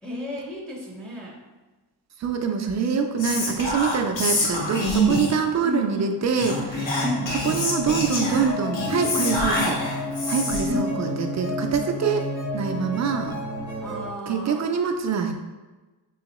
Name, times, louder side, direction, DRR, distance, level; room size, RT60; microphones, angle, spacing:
voice 1, 0.0-1.4 5.6-6.2 7.0-7.4 10.6-10.9 13.8-14.7, left 1 dB, ahead, -3 dB, 0.6 m, -32 dB
voice 2, 2.2-7.0 7.4-9.8 10.3-12.3 12.5-13.3 14.3-15.3, right 6 dB, 40° right, 5 dB, 0.4 m, -25 dB
Whispering, 3.2-5.5 6.3-10.8, equal, 75° left, 1.1 m, -26 dB
sound 1, 6.6-14.1, left 1 dB, 55° left, 1.5 m, -31 dB
3.5 x 3.1 x 2.9 m, 1.2 s
cardioid pair, 105°, 45 cm